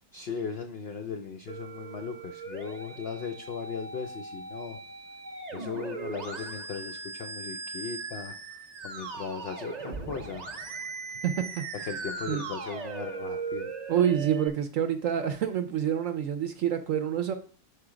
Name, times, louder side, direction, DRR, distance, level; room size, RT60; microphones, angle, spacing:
voice 1, 0.1-4.8 5.5-8.4 8.8-10.5 11.8-13.7, left 5 dB, 70° left, 6 dB, 0.5 m, -37 dB
Musical instrument, 1.5-14.5, right 4 dB, 35° right, 0.7 m, -39 dB
voice 2, 11.2-11.7 12.3-12.5 13.9-17.3, right 9 dB, 65° right, 8 dB, 0.8 m, -27 dB
5.9 x 5.0 x 4.9 m, 0.42 s
omnidirectional pair, 1.8 m